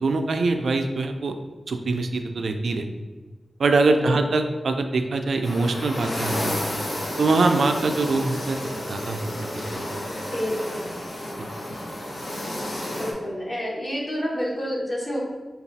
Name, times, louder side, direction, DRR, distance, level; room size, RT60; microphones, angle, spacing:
voice 1, 0.0-1.4 1.7-2.9 3.6-6.6 7.2-8.6 8.9-10.0, right 3 dB, 85° right, 6 dB, 0.3 m, -23 dB
sound 1, 5.4-13.1, left 1 dB, 75° left, 1.0 m, -31 dB
voice 2, 10.3-10.9 13.0-15.2, equal, 40° left, -3 dB, 1.1 m, -29 dB
3.8 x 2.3 x 4.0 m, 1.3 s
wide cardioid pair, 80°, 0 cm